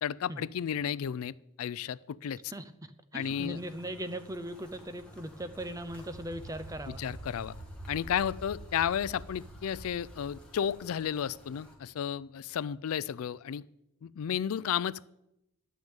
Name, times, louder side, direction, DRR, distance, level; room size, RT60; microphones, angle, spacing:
voice 1, 0.0-2.5 3.1-3.6 6.9-7.5 7.9-13.6 14.0-15.0, left 8 dB, 80° left, 19 dB, 0.4 m, -33 dB
voice 2, 3.1-7.0, right 1 dB, 15° right, 11 dB, 0.6 m, -39 dB
sound 1, 3.2-11.8, left 1 dB, 5° left, 2.0 m, -54 dB
sound 2, 4.9-11.5, right 1 dB, 55° right, 4.4 m, -48 dB
11.5 x 6.3 x 9.0 m, 0.85 s
head